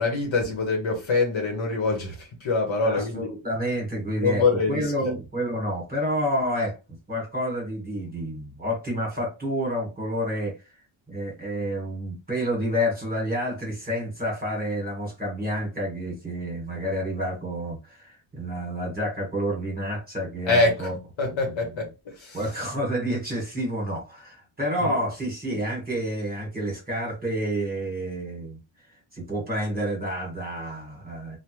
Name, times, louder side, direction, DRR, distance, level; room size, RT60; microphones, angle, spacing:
voice 1, 0.0-3.3 4.2-5.1 20.4-20.9 21.2-22.4 24.8-24.9, left 3 dB, 70° left, 1.0 m, -25 dB
voice 2, 2.8-6.8 7.1-10.5 11.1-21.0 22.3-28.6 29.1-31.4, equal, 20° right, 1.3 m, -29 dB
3.3 x 2.2 x 3.0 m
wide cardioid pair, 165°, 48 cm